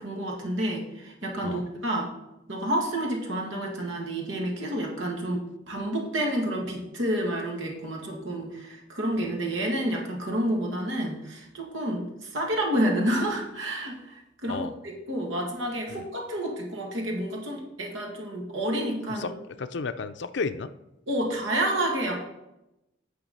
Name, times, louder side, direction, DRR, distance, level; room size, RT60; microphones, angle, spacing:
voice 1, 0.0-2.1 2.5-19.3 21.1-22.2, right 1 dB, 85° right, 0 dB, 2.1 m, -29 dB
voice 2, 19.6-20.7, left 4 dB, 65° left, 11 dB, 0.5 m, -32 dB
8.9 x 5.7 x 5.4 m, 0.90 s
head